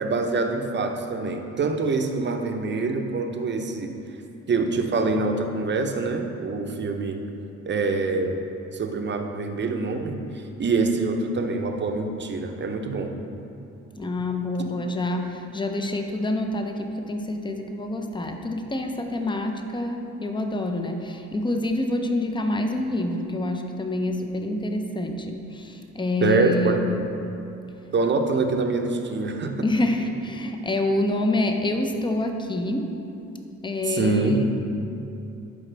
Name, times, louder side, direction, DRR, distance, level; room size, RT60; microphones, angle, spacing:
voice 1, 0.0-4.0 4.5-7.2 7.7-10.2 10.6-13.1 26.2-26.8 27.9-29.7 33.9-34.4, right 3 dB, 35° right, 4 dB, 0.8 m, -25 dB
voice 2, 14.0-27.0 29.6-33.0 33.6-34.4, left 2 dB, 15° left, 4 dB, 0.7 m, -27 dB
11.5 x 5.0 x 3.3 m, 2.8 s
cardioid pair, 90°, 30 cm